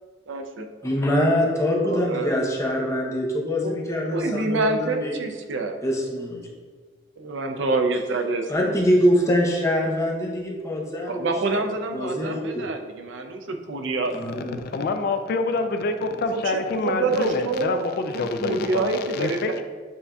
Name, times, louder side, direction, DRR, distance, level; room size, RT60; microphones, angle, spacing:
voice 1, 0.3-0.7 1.8-2.3 3.6-3.7 4.1-5.8 7.2-8.7 11.1-14.1 16.3-17.9 18.1-19.6, right 3 dB, 80° right, 5 dB, 0.5 m, -27 dB
voice 2, 0.8-5.2 5.8-6.4 8.5-11.6 11.9-12.7 14.1-14.6, equal, 15° left, -2 dB, 0.7 m, -24 dB
voice 3, 14.5-19.6, left 3 dB, 55° left, 7 dB, 0.3 m, -26 dB
7.4 x 2.7 x 2.3 m, 1.5 s
head